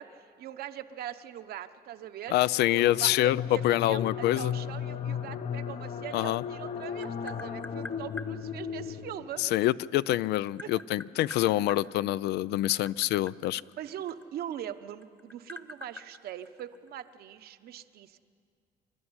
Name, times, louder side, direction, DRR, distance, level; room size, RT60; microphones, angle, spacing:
voice 1, 0.0-2.3 2.7-9.4 10.6-10.8 11.4-12.2 13.8-18.2, right 10 dB, 65° right, 10 dB, 1.0 m, -42 dB
voice 2, 2.3-4.5 6.1-6.4 9.4-13.6, left 15 dB, 80° left, 19 dB, 0.4 m, -26 dB
sound 1, 2.6-9.6, left 7 dB, 40° left, 0.8 m, -36 dB
Tap, 6.4-8.3 9.6-11.8 12.5-14.7 15.0-17.0, left 3 dB, 10° left, 0.9 m, -45 dB
26.5 x 12.5 x 9.7 m, 2.3 s
cardioid pair, 110°, 17 cm